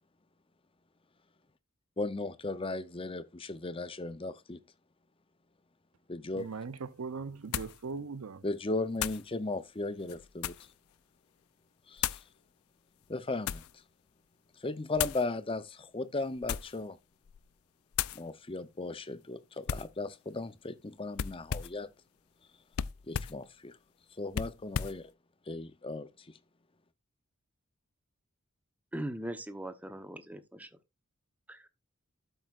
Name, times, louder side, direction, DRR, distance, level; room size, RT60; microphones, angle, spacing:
voice 1, 2.0-4.6 6.1-6.5 8.4-10.7 11.9-12.2 13.1-13.6 14.6-17.0 18.1-21.9 23.1-23.8 24.2-25.1 25.5-26.3, left 2 dB, 25° left, 0.7 m, -36 dB
voice 2, 6.3-8.4, right 4 dB, 85° right, 0.6 m, -40 dB
sound 1, 6.4-6.5 7.5-7.8 9.0-9.3 10.0-10.7 12.0-12.3 13.0-13.7 14.9-15.3 16.3-16.8 17.2-17.5 17.9-18.2 19.7-20.0 21.1-21.8 22.7-23.4 24.3-25.0, left 9 dB, 80° left, 0.4 m, -35 dB
voice 3, 28.9-30.7 31.5-31.7, right 1 dB, 5° right, 0.9 m, -40 dB
12.0 x 7.8 x 2.5 m
head